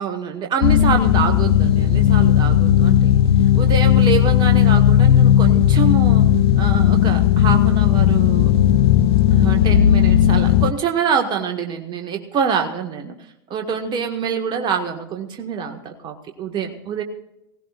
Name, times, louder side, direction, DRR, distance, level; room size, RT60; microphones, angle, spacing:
voice 1, 0.0-3.2 3.5-6.3 6.6-8.5 9.3-13.1 13.5-17.0, right 6 dB, 35° right, 4 dB, 1.5 m, -25 dB
sound 1, 0.6-10.7, left 10 dB, 75° left, 0.6 m, -15 dB
20.0 x 16.5 x 2.4 m, 0.87 s
hypercardioid pair, 90°, 13 cm